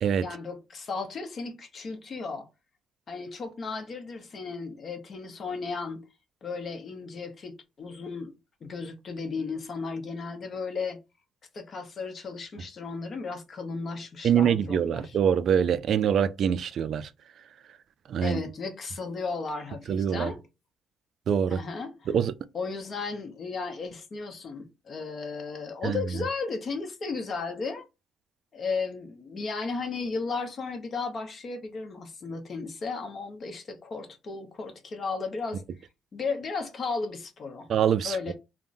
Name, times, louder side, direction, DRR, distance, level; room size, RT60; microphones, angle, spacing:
voice 1, 0.2-2.5 3.1-6.0 6.4-8.3 8.6-11.0 11.5-15.2 18.2-20.4 21.5-22.1 22.5-27.8 28.5-35.6 36.1-37.7 38.0-38.3, left 4 dB, 50° left, 0.9 m, -35 dB
voice 2, 14.2-17.1 18.1-18.4 19.9-20.3 21.3-21.6 22.1-22.3 25.8-26.0 37.7-38.3, right 8 dB, 60° right, 0.3 m, -24 dB
3.5 x 2.1 x 2.6 m
cardioid pair, 90°, 0 cm